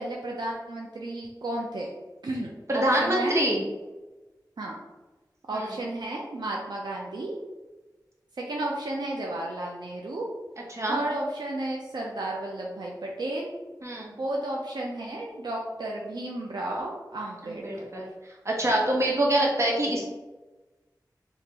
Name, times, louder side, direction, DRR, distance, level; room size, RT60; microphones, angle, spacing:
voice 1, 0.0-1.9 2.2-3.3 4.6-4.8 5.5-7.3 8.4-10.3 10.9-13.5 14.2-17.9, right 1 dB, 80° right, -2 dB, 0.5 m, -33 dB
voice 2, 2.7-3.6 5.5-5.7 10.7-11.0 13.8-14.1 17.4-18.1 18.4-20.1, right 1 dB, 40° right, -3 dB, 1.0 m, -25 dB
3.7 x 2.9 x 2.8 m, 1.2 s
wide cardioid pair, 60°, 7 cm